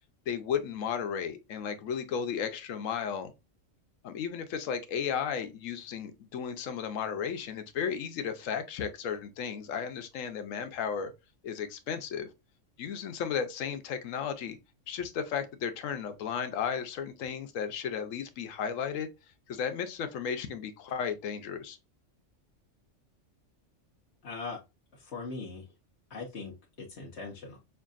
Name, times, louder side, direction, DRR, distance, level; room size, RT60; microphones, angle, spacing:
voice 1, 0.3-3.3 4.0-11.1 11.4-12.3 12.8-14.6 14.9-19.1 19.5-21.8, left 7 dB, 85° left, 1.0 m, -34 dB
voice 2, 24.2-24.6 24.9-25.7 26.1-26.5 26.8-27.6, left 4 dB, 60° left, 1.1 m, -40 dB
5.6 x 2.5 x 2.4 m
omnidirectional pair, 1.3 m